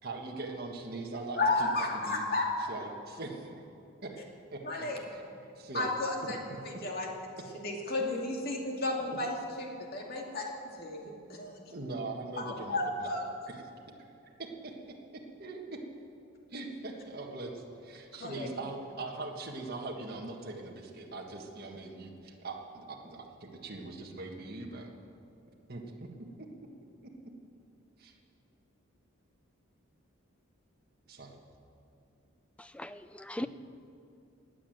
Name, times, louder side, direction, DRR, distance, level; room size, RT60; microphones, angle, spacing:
voice 1, 0.0-2.2 2.7-3.5 4.0-4.2 4.5-5.9 6.5-6.6 11.7-13.1 13.5-13.6 14.4-15.8 16.5-24.9 25.7-26.1 26.4-26.5 27.0-27.1 28.0-28.1 31.1-31.4, right 2 dB, 45° right, 0 dB, 1.6 m, -41 dB
voice 2, 1.4-2.7 4.6-5.0 5.7-6.4 6.6-7.1 7.5-11.5 12.4-13.2 18.2-18.5, left 2 dB, 45° left, 0 dB, 2.4 m, -33 dB
voice 3, 32.6-33.5, left 1 dB, 5° left, 12 dB, 0.3 m, -39 dB
19.5 x 9.1 x 7.8 m, 2.6 s
head